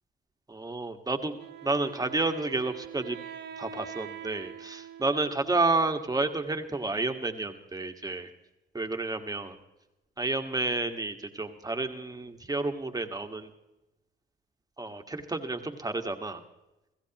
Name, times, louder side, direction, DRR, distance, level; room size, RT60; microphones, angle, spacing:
voice 1, 0.5-3.2 3.6-8.3 8.7-9.6 10.2-13.5 14.8-16.4, right 3 dB, 20° right, 5 dB, 1.7 m, -30 dB
Wind instrument woodwind instrument, 1.4-6.2, right 8 dB, 60° right, 1.2 m, -45 dB
29.0 x 16.0 x 3.0 m, 0.97 s
cardioid pair, 90°, 20 cm